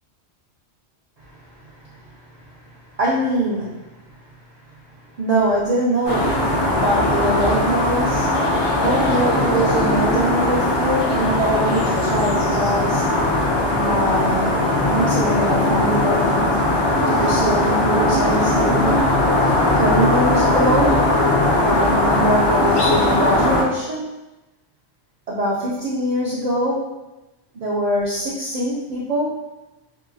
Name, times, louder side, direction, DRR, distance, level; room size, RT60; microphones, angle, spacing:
voice 1, 1.2-4.2 4.7-13.1 13.7-16.4 17.1-19.0 19.8-20.9 21.6-24.1 25.3-26.8 27.5-29.3, right 1 dB, 70° right, -5 dB, 0.3 m, -23 dB
sound 1, 6.0-23.6, left 2 dB, 45° left, 0.3 m, -19 dB
2.9 x 2.5 x 2.3 m, 1.0 s
omnidirectional pair, 1.2 m